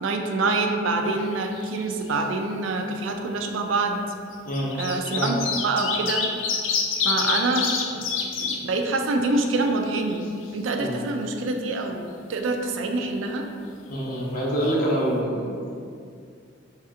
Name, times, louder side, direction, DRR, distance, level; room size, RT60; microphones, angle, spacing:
voice 1, 0.0-4.0 4.8-6.3 7.0-7.7 8.4-10.3 10.5-13.4, right 3 dB, 80° right, 4 dB, 0.4 m, -26 dB
sound 1, 1.1-1.8 2.1-2.2 3.3-3.4 4.3-8.6 9.0-9.1 9.4-10.4 14.3-14.4 14.6-14.7, left 6 dB, 85° left, 0.5 m, -27 dB
voice 2, 13.9-15.7, equal, 45° left, -5 dB, 0.8 m, -26 dB
3.2 x 2.8 x 3.6 m, 2.3 s
head